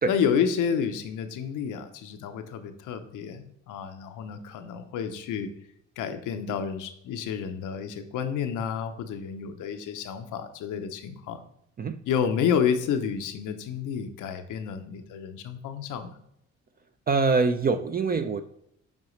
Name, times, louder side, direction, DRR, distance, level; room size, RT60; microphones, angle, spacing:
voice 1, 0.1-5.5 6.0-11.4 12.1-16.2, left 7 dB, 85° left, 8 dB, 0.8 m, -30 dB
voice 2, 17.1-18.4, right 4 dB, 30° right, 9 dB, 0.4 m, -24 dB
7.4 x 4.8 x 3.1 m, 0.76 s
cardioid pair, 90°, 30 cm